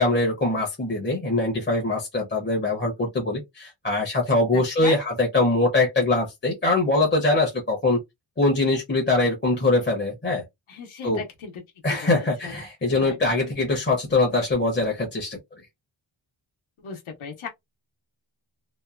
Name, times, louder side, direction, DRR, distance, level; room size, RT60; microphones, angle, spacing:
voice 1, 0.0-8.0 8.4-10.4 11.0-11.2 11.8-15.4, left 2 dB, 20° left, 0.7 m, -23 dB
voice 2, 4.5-5.0 10.7-11.5 12.0-12.5 13.0-13.1 16.8-17.5, left 6 dB, 70° left, 1.0 m, -37 dB
2.8 x 2.2 x 2.4 m
wide cardioid pair, 165°, 50 cm